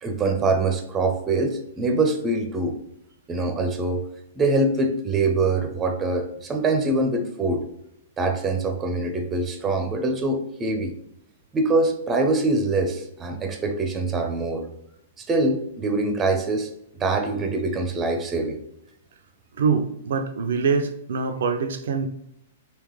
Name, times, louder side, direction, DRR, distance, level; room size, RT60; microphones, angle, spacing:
voice 1, 0.0-2.8 3.3-4.0 4.4-7.7 8.2-10.9 11.5-14.6 15.3-18.6, right 2 dB, 20° right, 5 dB, 0.6 m, -24 dB
voice 2, 19.6-22.1, right 5 dB, 65° right, 7 dB, 0.4 m, -24 dB
3.7 x 2.9 x 3.1 m, 0.79 s
hypercardioid pair, 110°, 0 cm